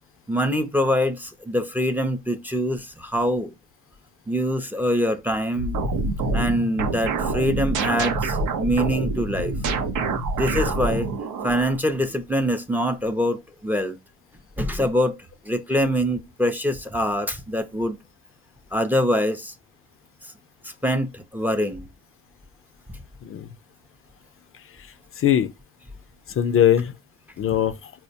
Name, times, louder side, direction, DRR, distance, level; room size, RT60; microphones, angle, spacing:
voice 1, 0.3-3.5 4.3-5.8 6.3-9.5 10.3-11.1 11.4-14.0 14.6-15.2 15.4-18.0 18.7-19.5 20.6-21.9, equal, 5° right, 0.5 m, -24 dB
sound 1, 5.6-11.8, right 3 dB, 90° right, 0.6 m, -26 dB
voice 2, 24.8-25.5 26.3-26.9 27.4-27.9, left 10 dB, 45° left, 0.4 m, -22 dB
4.4 x 2.1 x 2.7 m
cardioid pair, 90°, 30 cm